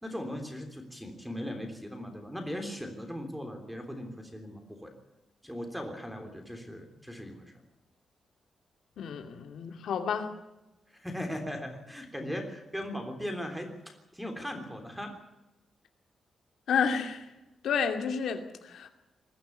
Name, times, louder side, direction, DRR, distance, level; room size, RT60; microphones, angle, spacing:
voice 1, 0.0-4.9 5.4-7.5 10.9-13.7 14.1-15.1, equal, ahead, 5 dB, 3.4 m, -38 dB
voice 2, 9.0-10.3 16.7-17.2 17.6-18.9, left 6 dB, 85° left, 5 dB, 2.5 m, -30 dB
21.0 x 14.5 x 9.3 m, 0.98 s
wide cardioid pair, 175°, 0 cm